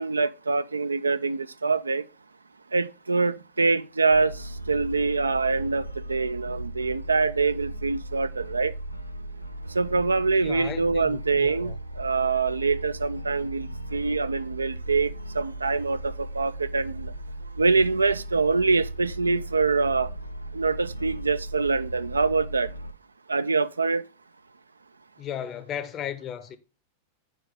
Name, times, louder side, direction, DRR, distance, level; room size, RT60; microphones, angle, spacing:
voice 1, 0.0-2.0 2.7-8.7 9.7-17.1 17.6-20.1 20.5-22.7 23.3-24.0, right 4 dB, 75° right, 0.3 m, -25 dB
sound 1, 4.1-22.9, right 1 dB, 90° left, 0.5 m, -37 dB
voice 2, 10.4-11.8 25.2-26.6, left 9 dB, 30° left, 0.7 m, -35 dB
6.4 x 4.7 x 4.9 m
figure-of-eight pair, 90°, 0 cm